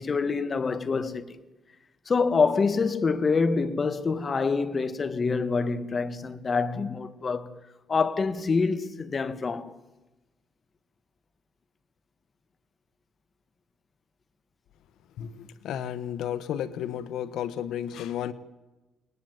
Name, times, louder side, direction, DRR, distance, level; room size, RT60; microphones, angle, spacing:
voice 1, 0.0-1.4 2.1-7.5 7.9-9.7, left 4 dB, 40° left, 1.8 m, -26 dB
voice 2, 15.2-18.3, left 10 dB, 80° left, 1.2 m, -33 dB
30.0 x 20.0 x 9.3 m
cardioid pair, 90°, 0 cm